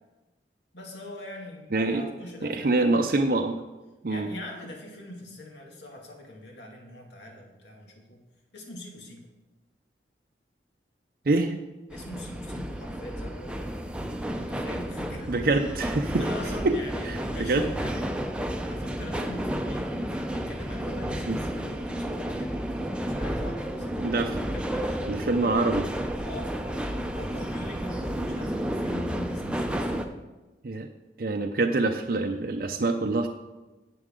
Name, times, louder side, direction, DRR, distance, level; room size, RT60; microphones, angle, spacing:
voice 1, 0.7-3.1 4.1-8.2 8.5-9.3 11.9-13.8 14.3-15.3 16.2-18.1 18.7-23.9 24.5-25.1 26.2-30.0, left 1 dB, 85° left, 0 dB, 2.2 m, -42 dB
voice 2, 1.7-2.0 2.4-3.6 4.0-4.3 11.3-11.5 15.3-16.3 16.6-16.7 17.0-17.6 21.3-21.4 24.0-24.4 25.1-25.9 30.6-30.9 31.2-33.3, right 2 dB, 55° right, 3 dB, 0.6 m, -25 dB
sound 1, 11.9-30.1, equal, 5° right, 0.6 m, -31 dB
11.5 x 8.5 x 3.7 m, 1.1 s
head